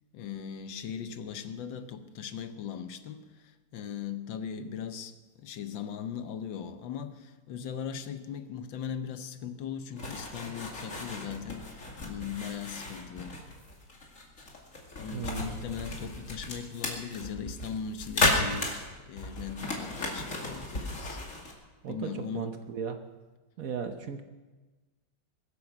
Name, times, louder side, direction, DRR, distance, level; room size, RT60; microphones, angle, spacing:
voice 1, 0.1-13.4 14.9-18.8 19.1-21.2 21.9-22.5 23.6-23.7, left 7 dB, 80° left, 1.6 m, -39 dB
sound 1, 10.0-21.5, left 2 dB, 40° left, 2.6 m, -34 dB
voice 2, 15.1-15.6 21.8-23.0 23.6-24.2, right 7 dB, 55° right, 1.1 m, -36 dB
22.5 x 8.6 x 6.0 m
omnidirectional pair, 2.0 m